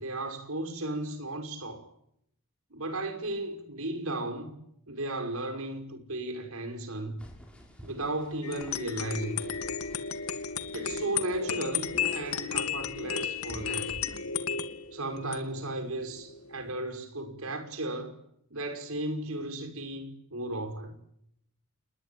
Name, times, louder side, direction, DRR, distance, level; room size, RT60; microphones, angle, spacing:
voice 1, 0.0-1.9 2.7-4.5 4.9-7.2 7.8-9.5 10.7-14.0 14.9-18.2 18.5-21.0, right 1 dB, 80° right, 5.7 m, -35 dB
sound 1, 7.2-14.2, equal, 5° left, 5.8 m, -51 dB
sound 2, 8.4-16.7, left 6 dB, 90° left, 2.3 m, -34 dB
29.0 x 21.5 x 8.6 m
head